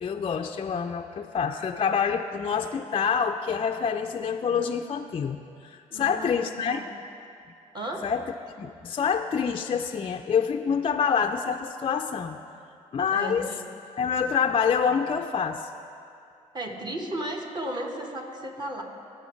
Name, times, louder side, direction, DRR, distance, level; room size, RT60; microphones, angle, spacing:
voice 1, 0.0-5.4 5.6-6.8 8.0-8.2 8.6-12.4 12.9-13.5 14.0-15.7, left 6 dB, 35° left, 5 dB, 0.4 m, -26 dB
voice 2, 5.9-6.9 7.7-8.1 13.1-13.6 16.5-18.8, right 1 dB, 30° right, 1 dB, 1.6 m, -34 dB
17.5 x 6.4 x 3.2 m, 2.6 s
supercardioid pair, 55°, 16 cm